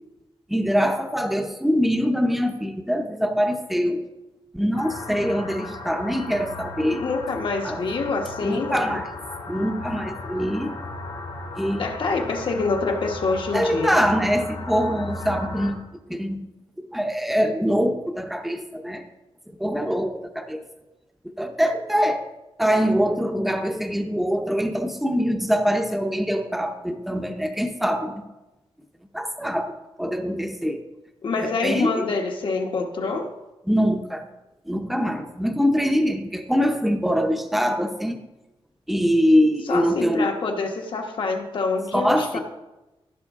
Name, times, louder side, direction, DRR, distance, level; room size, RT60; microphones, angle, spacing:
voice 1, 0.5-4.0 4.5-7.0 7.6-7.8 8.4-9.1 9.5-10.7 11.6-11.9 13.5-15.8 16.1-16.4 16.8-19.0 19.6-20.6 21.2-22.2 22.6-28.2 29.1-29.7 30.0-30.8 31.4-32.1 33.7-34.2 34.6-38.2 38.9-40.3 41.9-42.4, equal, ahead, 5 dB, 0.7 m, -23 dB
sound 1, 4.7-15.7, left 2 dB, 80° left, 3.0 m, -36 dB
voice 2, 7.0-9.0 11.8-14.0 31.2-33.3 39.7-42.4, left 4 dB, 60° left, 3 dB, 1.2 m, -26 dB
15.0 x 6.1 x 3.6 m, 1.0 s
wide cardioid pair, 175°, 10 cm